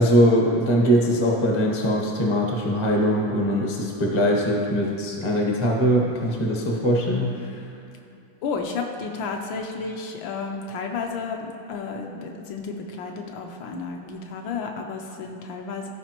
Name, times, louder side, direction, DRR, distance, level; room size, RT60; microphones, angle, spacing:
voice 1, 0.0-7.6, equal, 35° left, -1 dB, 0.4 m, -21 dB
voice 2, 8.4-15.9, left 4 dB, 75° left, 2 dB, 1.3 m, -32 dB
14.5 x 5.0 x 2.9 m, 2.7 s
omnidirectional pair, 2.4 m